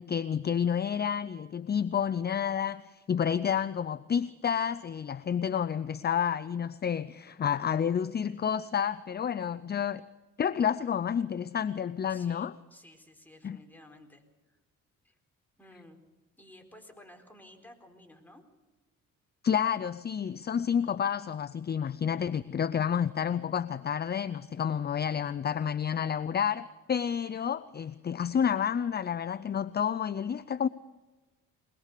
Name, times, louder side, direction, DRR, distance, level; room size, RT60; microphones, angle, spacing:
voice 1, 0.0-10.0 10.4-12.5 13.4-13.6 19.4-30.7, left 8 dB, 35° left, 16 dB, 0.6 m, -30 dB
voice 2, 12.1-14.2 15.0-15.2 15.6-16.0 16.4-18.4, left 1 dB, 5° left, 4 dB, 4.3 m, -54 dB
22.5 x 21.0 x 6.7 m, 1.2 s
cardioid pair, 90°, 30 cm